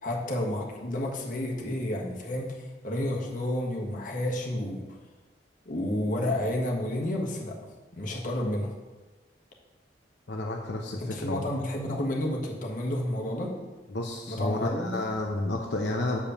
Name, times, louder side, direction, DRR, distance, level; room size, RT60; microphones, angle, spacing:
voice 1, 0.0-4.8 5.6-7.6 7.9-8.7 11.0-13.5 14.3-14.9, left 1 dB, 50° left, -1 dB, 1.5 m, -30 dB
voice 2, 10.3-11.6 13.9-16.2, left 2 dB, 75° left, 0 dB, 0.9 m, -31 dB
7.1 x 5.1 x 7.0 m, 1.3 s
head